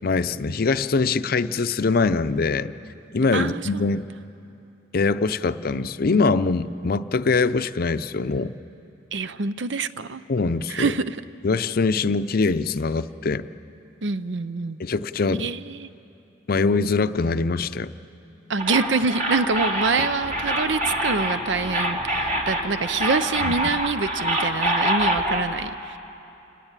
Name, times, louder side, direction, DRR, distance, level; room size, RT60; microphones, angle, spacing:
voice 1, 0.0-2.7 3.1-4.1 4.9-8.5 10.3-10.9 11.4-13.5 14.8-15.5 16.5-17.9 20.0-20.1 23.4-23.5, left 4 dB, 55° left, 13 dB, 0.6 m, -23 dB
voice 2, 3.3-3.9 9.1-10.2 10.7-11.2 14.0-14.8 15.4-15.9 18.5-26.0, right 4 dB, 75° right, 14 dB, 0.7 m, -26 dB
sound 1, 18.6-25.4, right 1 dB, 50° right, 2.7 m, -25 dB
29.0 x 19.5 x 9.0 m, 2.9 s
head